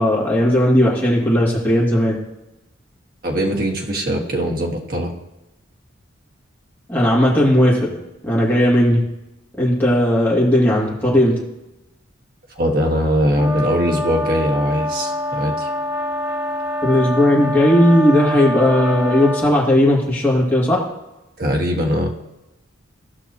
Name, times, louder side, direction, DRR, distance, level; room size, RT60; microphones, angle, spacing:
voice 1, 0.0-2.2 6.9-7.8 8.2-9.0 9.6-11.3 16.8-20.8, left 1 dB, 10° left, -6 dB, 2.3 m, -16 dB
voice 2, 3.2-5.1 12.5-15.7 21.4-22.1, equal, 45° right, 1 dB, 1.5 m, -21 dB
sound 1, 13.3-19.6, left 1 dB, 15° right, 1.7 m, -25 dB
16.0 x 6.0 x 2.9 m, 0.97 s
head